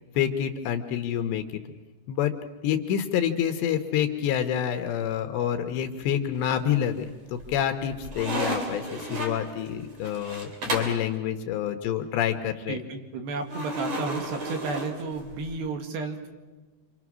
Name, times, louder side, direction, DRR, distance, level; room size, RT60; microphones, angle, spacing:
voice 1, 0.2-1.6 2.1-2.3 2.6-12.8, left 9 dB, 80° left, 6 dB, 3.2 m, -27 dB
sound 1, 6.4-7.0 7.4-11.1 13.5-15.6, right 1 dB, 40° right, 3.8 m, -33 dB
voice 2, 12.7-16.4, right 3 dB, 75° right, 5 dB, 4.0 m, -33 dB
28.5 x 25.0 x 6.2 m, 1.2 s
omnidirectional pair, 5.0 m